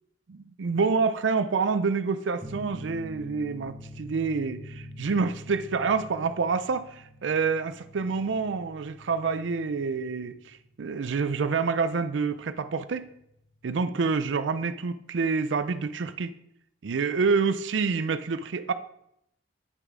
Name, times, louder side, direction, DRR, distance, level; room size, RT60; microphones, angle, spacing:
voice 1, 0.3-13.1 13.6-16.3 16.8-18.7, right 5 dB, 90° right, 11 dB, 0.5 m, -27 dB
sound 1, 2.4-13.6, equal, 20° right, 1.3 m, -46 dB
9.2 x 6.6 x 4.9 m, 0.77 s
head